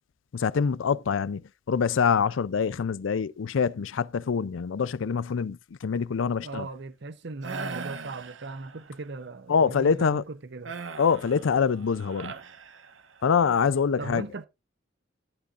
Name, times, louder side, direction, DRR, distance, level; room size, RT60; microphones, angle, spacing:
voice 1, 0.3-1.4 1.7-6.7 9.5-10.2 11.0-12.3 13.2-14.2, left 6 dB, 85° left, 0.4 m, -25 dB
voice 2, 6.4-10.7 14.0-14.5, right 3 dB, 60° right, 0.8 m, -38 dB
sound 1, 7.4-9.0 10.7-13.3, right 4 dB, 85° right, 1.2 m, -40 dB
11.5 x 10.5 x 2.5 m
head